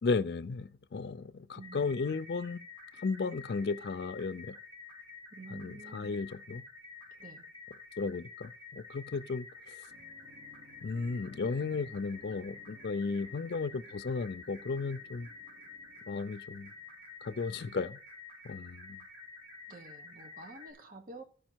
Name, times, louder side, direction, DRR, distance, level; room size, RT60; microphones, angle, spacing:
voice 1, 0.0-2.6 3.0-4.6 5.5-6.6 8.0-9.9 10.8-15.3 16.1-16.7 17.2-18.0 18.4-19.0, left 4 dB, 65° left, 0.4 m, -35 dB
voice 2, 1.5-1.9 5.3-6.2 7.2-7.5 19.7-21.2, right 3 dB, 50° right, 1.2 m, -49 dB
sound 1, 1.6-20.7, left 4 dB, 30° right, 4.5 m, -50 dB
sound 2, 9.9-17.4, left 1 dB, 85° right, 2.8 m, -60 dB
13.0 x 5.1 x 4.5 m
head